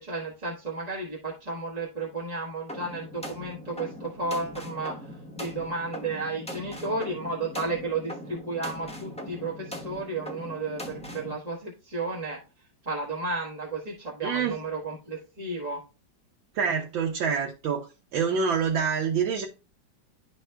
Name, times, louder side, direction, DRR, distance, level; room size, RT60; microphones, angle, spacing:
voice 1, 0.0-5.1 5.4-12.4 12.8-15.8, right 3 dB, 25° right, 1.3 m, -33 dB
sound 1, 2.7-11.3, equal, 5° left, 0.5 m, -40 dB
voice 2, 14.2-14.6 16.6-17.9 18.1-19.5, right 6 dB, 90° right, 1.8 m, -26 dB
11.5 x 4.0 x 2.2 m
omnidirectional pair, 2.1 m